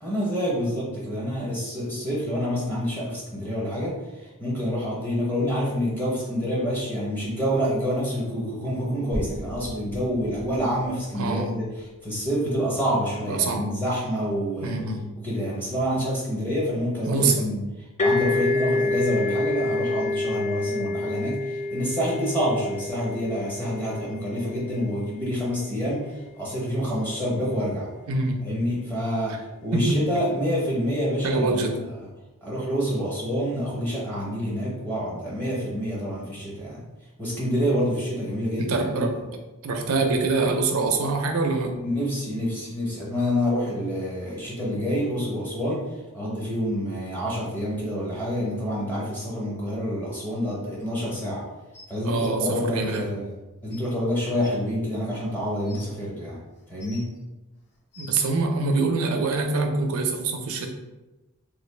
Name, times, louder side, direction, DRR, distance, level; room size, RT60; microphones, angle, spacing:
voice 1, 0.0-11.7 12.0-14.7 15.2-17.6 18.0-27.9 28.4-31.6 32.4-36.9 37.2-39.0 41.7-45.9 46.1-51.4 51.9-53.3 53.6-56.4 56.7-57.1, equal, 10° left, -6 dB, 0.7 m, -27 dB
sound 1, 9.1-13.1, equal, 75° left, 1.0 m, -39 dB
voice 2, 11.1-11.6 13.2-13.7 14.6-15.1 17.1-17.6 28.1-28.5 29.3-29.4 29.7-29.9 31.2-31.8 38.6-39.1 39.6-41.8 52.0-53.2 58.0-60.7, right 3 dB, 70° right, 4 dB, 0.5 m, -25 dB
sound 2, 18.0-25.5, left 2 dB, 30° left, 0.3 m, -28 dB
sound 3, 51.7-52.3 53.3-53.4 53.7-53.8 54.4-54.5 55.3-55.9 56.6-57.2 57.7-58.3 59.3-59.4, left 3 dB, 50° left, 0.8 m, -48 dB
3.1 x 2.3 x 3.2 m, 1.1 s
head